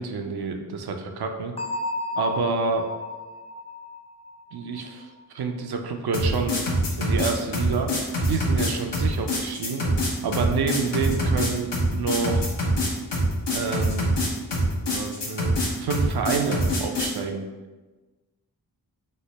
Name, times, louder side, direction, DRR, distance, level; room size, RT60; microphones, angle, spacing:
voice 1, 0.0-1.5 2.2-2.9 4.5-5.1 5.3-6.6 7.0-7.9 8.3-9.8 10.2-12.6 13.5-14.2 14.8-17.4, right 4 dB, 65° right, 4 dB, 0.5 m, -28 dB
Bell, 1.6-5.2, left 2 dB, 15° left, 0.4 m, -33 dB
sound 1, 6.1-17.2, equal, 90° left, 0.9 m, -24 dB
3.2 x 2.1 x 4.0 m, 1.2 s
cardioid pair, 45°, 41 cm